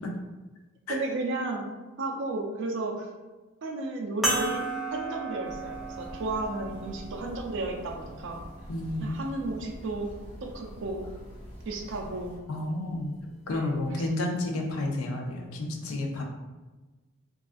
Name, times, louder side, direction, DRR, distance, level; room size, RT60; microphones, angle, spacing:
voice 1, 0.9-1.7 2.0-3.1 3.6-4.6 4.9-8.4 9.0-10.1 10.4-11.2 11.7-12.3 13.5-13.7, right 2 dB, 60° right, 2 dB, 0.4 m, -33 dB
sound 1, 4.2-9.0 9.8-9.9 12.1-12.2, right 2 dB, ahead, 0.4 m, -34 dB
sound 2, 5.4-12.4, equal, 30° left, 0.7 m, -45 dB
voice 2, 8.7-9.1 12.5-16.2, left 2 dB, 75° left, 2 dB, 0.5 m, -31 dB
2.4 x 2.3 x 2.4 m, 1.2 s
head